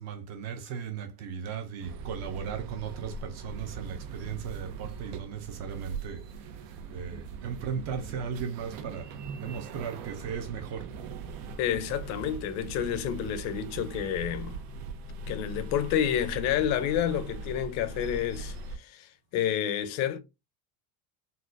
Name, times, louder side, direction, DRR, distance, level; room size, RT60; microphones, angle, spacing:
voice 1, 0.0-10.9, right 7 dB, 40° right, 0.4 m, -37 dB
sound 1, 1.8-18.8, right 4 dB, 90° right, 0.8 m, -40 dB
voice 2, 11.6-14.6 15.3-20.2, left 10 dB, 40° left, 0.5 m, -29 dB
3.9 x 2.1 x 2.4 m
cardioid pair, 170°, 45 cm